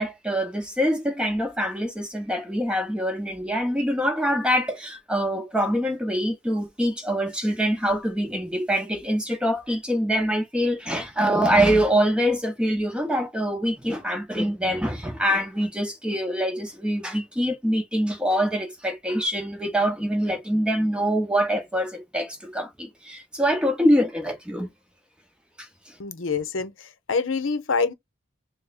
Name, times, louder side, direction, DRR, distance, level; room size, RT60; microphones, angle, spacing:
voice 1, 0.0-24.7 25.6-25.9, equal, 5° right, 0.9 m, -24 dB
voice 2, 26.0-27.9, left 4 dB, 70° left, 0.7 m, -26 dB
3.5 x 2.1 x 4.1 m
head